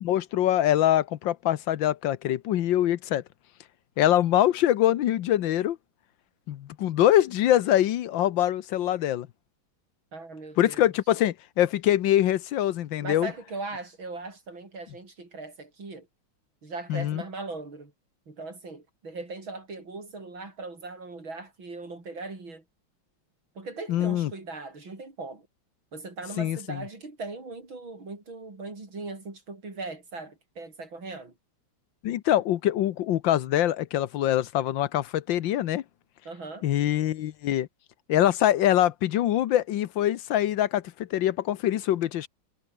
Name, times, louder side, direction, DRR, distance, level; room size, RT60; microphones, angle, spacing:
voice 1, 0.0-3.2 4.0-5.8 6.5-9.3 10.6-13.3 16.9-17.2 23.9-24.3 26.4-26.8 32.0-35.8 36.6-37.7 38.1-42.3, left 12 dB, 75° left, 1.6 m, -24 dB
voice 2, 10.1-10.9 13.0-16.1 16.6-17.9 18.3-22.6 23.6-25.5 25.9-31.3 36.3-36.7, right 3 dB, 90° right, 6.3 m, -39 dB
omnidirectional pair, 2.1 m